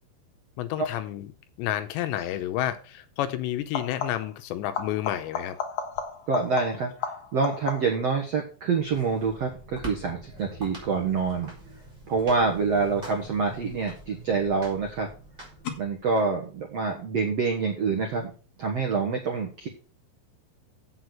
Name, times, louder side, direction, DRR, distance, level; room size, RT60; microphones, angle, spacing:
voice 1, 0.6-1.3 1.6-5.6, left 12 dB, 80° left, 10 dB, 2.9 m, -30 dB
sound 1, 2.2-2.4 3.6-4.4 4.7-8.1 13.5-14.1 15.6-15.7, left 7 dB, 60° left, 2.1 m, -34 dB
voice 2, 6.3-6.9 7.3-11.5 12.0-15.1 15.8-18.3 18.6-19.7, right 4 dB, 75° right, 2 dB, 1.4 m, -26 dB
sound 2, 8.8-16.2, right 1 dB, 10° right, 4.2 m, -45 dB
8.1 x 7.9 x 5.9 m, 0.36 s
omnidirectional pair, 5.3 m